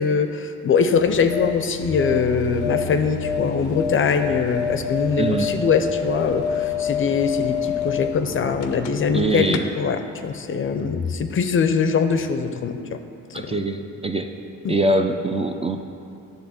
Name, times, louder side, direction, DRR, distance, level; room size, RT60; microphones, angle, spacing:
voice 1, 0.0-13.0 13.3-13.6 14.6-14.7, left 5 dB, 45° left, 8 dB, 0.5 m, -22 dB
sound 1, 1.0-9.2 9.5-9.6, left 8 dB, 85° left, 0.6 m, -28 dB
sound 2, 1.8-9.9, right 1 dB, 40° right, 1.6 m, -38 dB
sound 3, 2.0-9.3, right 1 dB, 65° right, 1.7 m, -40 dB
voice 2, 5.2-5.5 9.1-9.7 13.3-14.3 14.7-15.9, right 2 dB, 20° right, 5 dB, 0.4 m, -23 dB
9.9 x 3.4 x 7.0 m, 2.5 s
cardioid pair, 90°, 30 cm